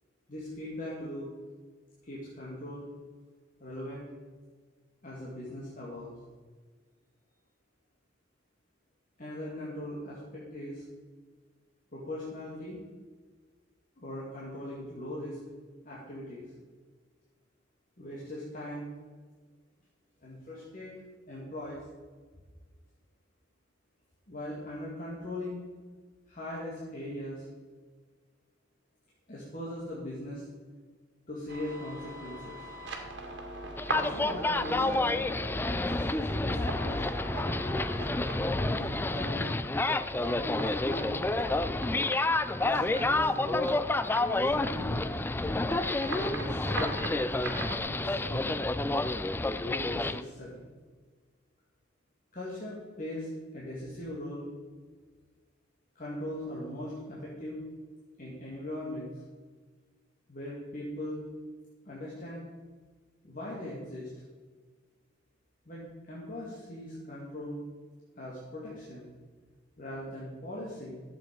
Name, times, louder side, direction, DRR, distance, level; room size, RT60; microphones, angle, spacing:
voice 1, 0.3-1.3 2.0-2.9 3.6-4.1 5.0-6.2 9.2-10.8 11.9-12.8 14.0-15.4 15.8-16.4 18.0-18.9 20.2-21.0 21.3-21.8 24.3-25.6 26.3-27.5 29.3-30.5 31.3-32.7 33.9-35.2 35.7-37.0 38.6-39.6 40.2-41.4 42.6-43.7 44.3-44.9 45.9-46.9 47.8-48.6 49.5-50.7 52.3-54.5 56.0-57.6 58.2-59.2 60.3-61.2 61.9-62.5 63.2-64.1 65.7-67.6 68.2-69.1 69.8-71.0, left 1 dB, 45° left, -6 dB, 2.2 m, -40 dB
sound 1, 31.5-47.8, right 2 dB, 65° right, 1.9 m, -41 dB
sound 2, 33.8-50.2, left 2 dB, 10° left, 0.3 m, -29 dB
12.0 x 7.6 x 5.3 m, 1.4 s
head